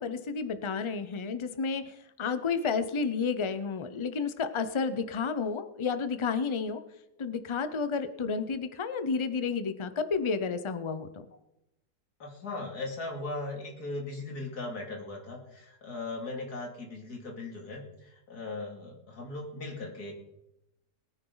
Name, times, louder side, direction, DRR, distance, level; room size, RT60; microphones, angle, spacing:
voice 1, 0.0-6.8 7.2-11.2, left 5 dB, 30° left, 10 dB, 0.5 m, -31 dB
voice 2, 12.2-20.1, left 2 dB, 70° left, 1 dB, 3.1 m, -38 dB
21.0 x 10.0 x 4.0 m, 0.89 s
omnidirectional pair, 1.7 m